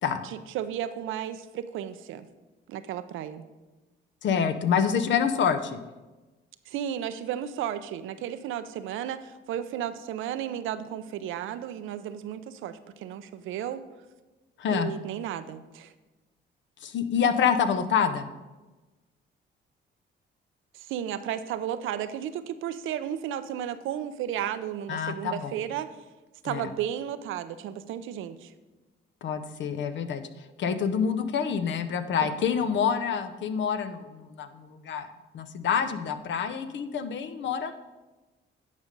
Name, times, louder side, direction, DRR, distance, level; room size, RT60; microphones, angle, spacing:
voice 1, 0.2-2.3 2.7-3.4 6.7-13.8 14.7-15.9 20.7-25.9 26.4-28.5 32.2-32.3, right 10 dB, 85° right, 11 dB, 0.6 m, -33 dB
voice 2, 4.2-5.8 14.6-14.9 16.8-18.3 24.9-25.5 26.5-26.7 29.2-30.3 30.6-35.1 35.3-37.7, left 7 dB, 65° left, 10 dB, 0.8 m, -27 dB
9.5 x 5.2 x 5.3 m, 1.2 s
cardioid pair, 90°, 20 cm